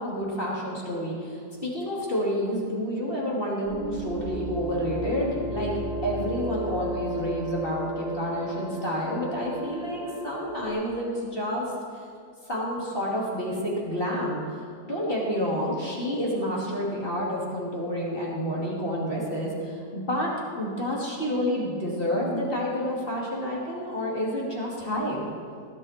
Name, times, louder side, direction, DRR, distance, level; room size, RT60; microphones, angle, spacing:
voice 1, 0.0-11.7 12.5-14.4 14.9-25.2, equal, 30° left, -5 dB, 2.9 m, -29 dB
sound 1, 3.6-10.7, right 1 dB, 65° left, 5.3 m, -34 dB
19.5 x 11.0 x 4.4 m, 2.3 s
omnidirectional pair, 1.9 m